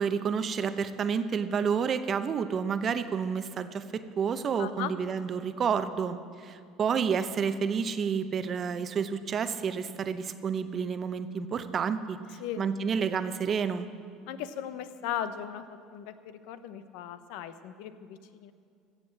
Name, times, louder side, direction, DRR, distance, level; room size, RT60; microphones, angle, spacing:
voice 1, 0.0-12.2 12.6-13.9, right 6 dB, 35° right, 11 dB, 0.7 m, -30 dB
voice 2, 4.6-4.9 12.4-12.7 14.3-18.5, left 10 dB, 80° left, 12 dB, 0.7 m, -37 dB
15.5 x 7.6 x 7.6 m, 2.3 s
supercardioid pair, 120°, 0 cm